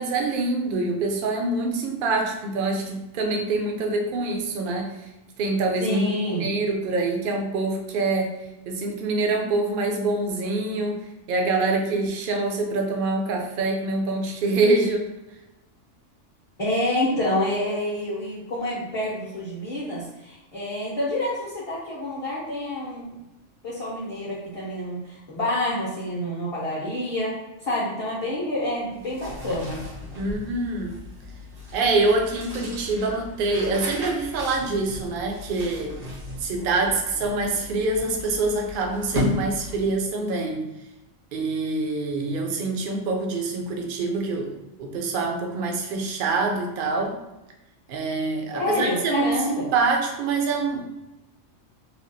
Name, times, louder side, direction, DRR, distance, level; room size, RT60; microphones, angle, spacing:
voice 1, 0.0-4.9 5.4-8.4 8.7-11.0 11.3-15.1 30.2-31.0 31.7-35.9 36.4-40.6 41.3-47.2 47.9-50.9, right 3 dB, 60° right, 2 dB, 0.6 m, -25 dB
voice 2, 5.8-6.5 16.6-23.2 23.6-29.8 48.5-49.7, left 1 dB, 35° left, -7 dB, 0.7 m, -28 dB
sound 1, 28.9-40.1, left 1 dB, 90° right, 1.4 m, -35 dB
3.3 x 2.3 x 2.6 m, 0.99 s
omnidirectional pair, 1.3 m